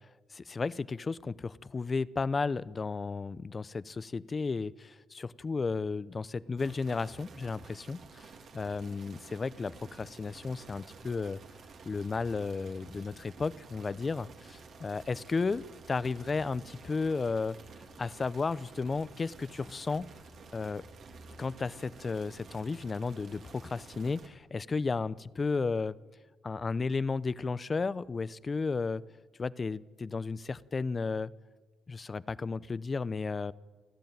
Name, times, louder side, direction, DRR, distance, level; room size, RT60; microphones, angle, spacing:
voice 1, 0.3-11.4 11.8-17.6 18.0-20.1 20.5-20.8 21.4-26.0 26.4-29.0 29.4-31.3 31.9-33.5, left 4 dB, 30° left, 19 dB, 0.6 m, -33 dB
sound 1, 6.6-24.3, right 4 dB, 60° right, 3.0 m, -52 dB
29.0 x 11.5 x 9.2 m, 1.3 s
cardioid pair, 90°, 0 cm